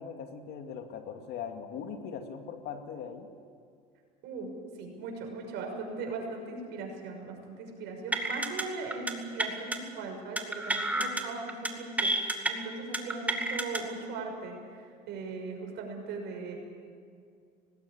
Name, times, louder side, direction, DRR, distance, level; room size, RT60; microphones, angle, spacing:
voice 1, 0.0-3.3, left 7 dB, 60° left, 5 dB, 2.4 m, -40 dB
voice 2, 4.8-16.6, right 3 dB, 65° right, 2 dB, 6.3 m, -39 dB
sound 1, 8.1-8.6 8.9-9.1 9.4-9.8 10.4-11.2 11.5-11.7 12.0-12.5 12.9-13.8, right 2 dB, 10° right, 2.3 m, -30 dB
19.5 x 17.0 x 10.0 m, 2.3 s
supercardioid pair, 95°, 19 cm